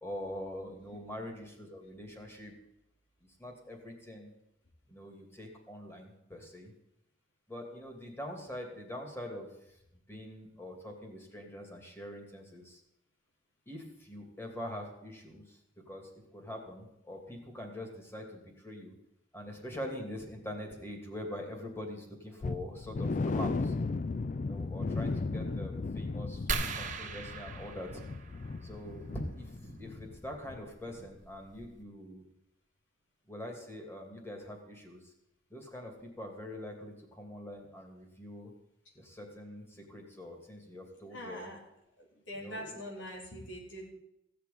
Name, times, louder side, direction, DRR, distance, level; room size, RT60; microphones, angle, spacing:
voice 1, 0.0-2.5 3.4-4.3 4.9-6.7 7.5-9.8 10.1-12.8 13.7-18.9 19.3-23.7 24.4-28.0 28.6-32.2 33.3-35.1 35.5-38.5 38.9-41.5 42.3-42.8, left 1 dB, 15° left, 2 dB, 2.7 m, -44 dB
sound 1, 22.4-30.2 30.4-30.6 31.0-31.1, left 3 dB, 45° left, 0.4 m, -36 dB
sound 2, 26.5-28.9 30.5-30.6 31.2-31.3 31.6-31.8, right 4 dB, 45° right, 1.5 m, -38 dB
voice 2, 41.1-41.6 42.0-43.9, equal, 90° left, -2 dB, 3.9 m, -43 dB
16.0 x 6.8 x 8.5 m, 0.84 s
head